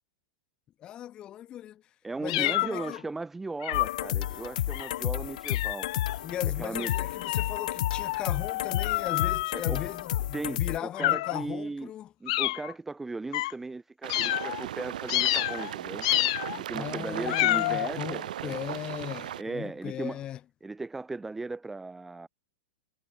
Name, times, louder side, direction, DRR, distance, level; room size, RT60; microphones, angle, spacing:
voice 1, 0.8-1.8 2.2-3.0 6.2-12.1 16.7-20.4, left 11 dB, 20° left, 2.6 m, -38 dB
voice 2, 2.0-6.0 6.6-6.9 9.5-9.8 10.3-11.9 12.2-16.1 16.5-18.6 19.4-20.2 20.6-22.3, right 3 dB, 5° right, 1.8 m, -37 dB
sound 1, 2.3-3.0 3.6-4.1 4.7-5.0 5.4-6.2 6.8-10.2 10.9-11.5 12.3-12.7 13.3-13.5 14.1-14.6 15.1-15.7 16.0-16.6 17.3-17.9, left 19 dB, 50° left, 1.0 m, -29 dB
sound 2, 3.7-10.8, left 13 dB, 65° left, 0.5 m, -32 dB
sound 3, 14.0-19.4, right 11 dB, 75° right, 5.9 m, -37 dB
supercardioid pair, 165°, 4 cm